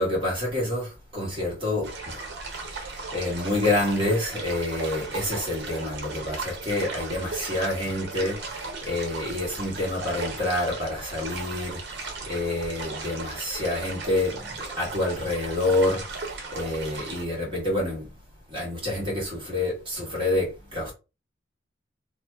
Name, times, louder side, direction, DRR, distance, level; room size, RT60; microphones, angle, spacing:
voice 1, 0.0-18.1 18.5-20.9, left 1 dB, 30° right, 1.5 m, -28 dB
sound 1, 1.8-17.2, right 3 dB, 60° right, 0.8 m, -37 dB
2.9 x 2.2 x 3.2 m
head